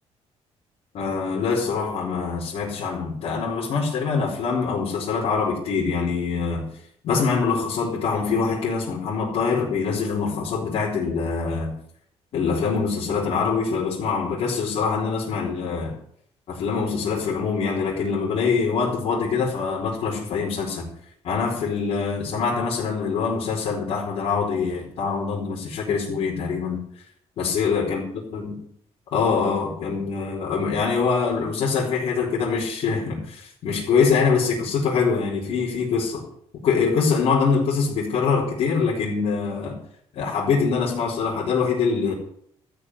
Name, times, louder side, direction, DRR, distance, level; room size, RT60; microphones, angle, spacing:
voice 1, 0.9-6.6 7.0-11.7 12.3-16.0 16.5-20.9 21.2-26.8 27.4-28.0 28.3-28.5 29.1-36.2 36.6-39.8 40.1-42.1, left 5 dB, 60° left, -7 dB, 4.9 m, -24 dB
14.0 x 6.4 x 9.9 m, 0.66 s
cardioid pair, 160°, 11 cm